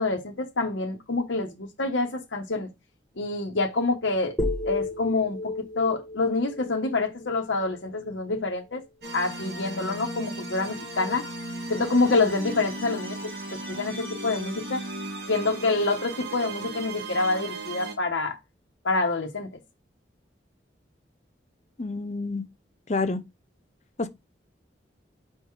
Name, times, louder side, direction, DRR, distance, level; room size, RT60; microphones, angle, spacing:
voice 1, 0.0-2.7 3.2-4.4 4.6-8.8 9.1-11.3 11.7-14.8 15.3-18.4 18.8-19.5, left 3 dB, 85° left, 1.1 m, -27 dB
sound 1, 4.4-8.5, left 2 dB, 10° left, 1.1 m, -33 dB
sound 2, 9.0-17.9, right 2 dB, 55° right, 2.2 m, -36 dB
voice 2, 21.8-22.5 22.9-23.2 24.0-24.1, left 3 dB, 35° left, 0.6 m, -28 dB
5.2 x 3.8 x 4.7 m
head